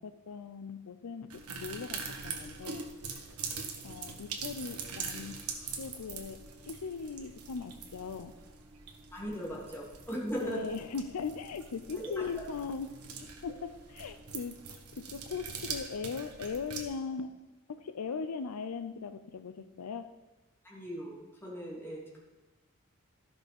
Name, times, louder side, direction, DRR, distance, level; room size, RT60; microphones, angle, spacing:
voice 1, 0.0-2.9 3.8-5.4 5.8-8.3 10.4-12.9 13.2-14.6 15.0-17.3 17.7-20.1, left 5 dB, 80° left, 11 dB, 0.5 m, -39 dB
sound 1, 1.3-16.8, right 5 dB, 75° right, 1.3 m, -43 dB
voice 2, 9.1-10.7 20.6-22.2, equal, 10° left, -5 dB, 3.0 m, -38 dB
13.0 x 6.0 x 5.3 m, 1.1 s
head